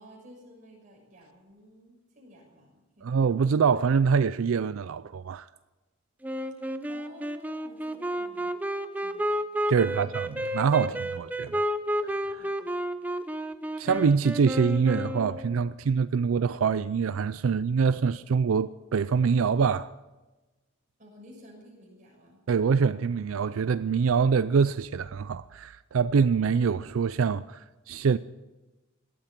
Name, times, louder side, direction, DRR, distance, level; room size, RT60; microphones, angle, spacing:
voice 1, 0.0-3.3 6.9-8.5 9.0-9.3 9.7-10.1 12.4-12.8 21.0-22.4, equal, 40° right, 6.5 m, -52 dB
voice 2, 3.0-5.5 9.7-10.3 10.5-11.6 12.0-12.5 13.8-19.9 22.5-28.2, right 6 dB, 90° right, 0.4 m, -25 dB
Wind instrument woodwind instrument, 6.2-15.7, equal, 10° right, 0.6 m, -31 dB
18.0 x 12.5 x 6.0 m
head